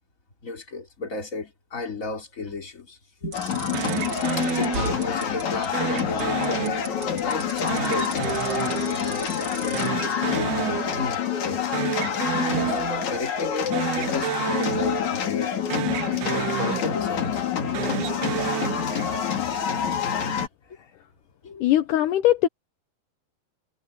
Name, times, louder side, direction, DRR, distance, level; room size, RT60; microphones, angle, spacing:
voice 1, 0.4-3.4 4.4-6.9 7.2-8.5 8.8-11.7 12.4-15.7 16.2-17.5 17.9-18.5 20.7-20.9 21.4-21.7, left 3 dB, 20° left, 3.1 m, -34 dB
sound 1, 3.3-20.5, left 8 dB, 50° left, 3.2 m, -27 dB
sound 2, 3.3-9.9, right 3 dB, 30° right, 4.0 m, -38 dB
sound 3, 3.7-5.3 5.7-7.3 7.7-9.5 9.7-11.3 11.5-13.3 13.7-15.5 15.7-17.3 17.7-19.4, right 17 dB, 75° right, 2.5 m, -31 dB
voice 2, 21.6-22.5, left 13 dB, 80° left, 1.9 m, -20 dB
omnidirectional pair, 4.7 m